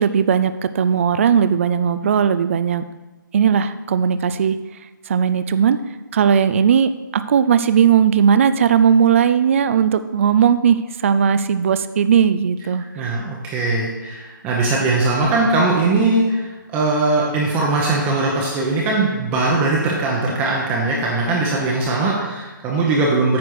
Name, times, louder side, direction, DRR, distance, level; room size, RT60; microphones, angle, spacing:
voice 1, 0.0-2.9 3.3-4.6 5.1-5.8 6.1-13.2, right 7 dB, 40° right, 12 dB, 0.3 m, -17 dB
voice 2, 12.9-23.4, right 3 dB, 15° right, -2 dB, 0.8 m, -20 dB
9.3 x 4.3 x 6.4 m, 1.2 s
hypercardioid pair, 160°, 11 cm